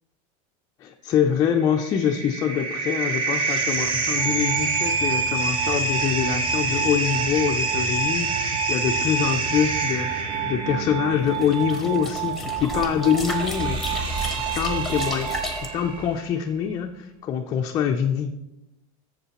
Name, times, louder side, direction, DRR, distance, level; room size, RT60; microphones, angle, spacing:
voice 1, 0.8-14.0 14.4-18.3, left 8 dB, 20° left, 2 dB, 0.4 m, -25 dB
sound 1, 1.6-16.2, right 3 dB, 30° right, 0.9 m, -27 dB
Glass, 4.1-16.1, right 11 dB, 70° right, 2.8 m, -32 dB
sound 2, 11.3-15.7, left 2 dB, ahead, 0.8 m, -34 dB
12.5 x 7.3 x 2.9 m, 0.92 s
supercardioid pair, 170°, 18 cm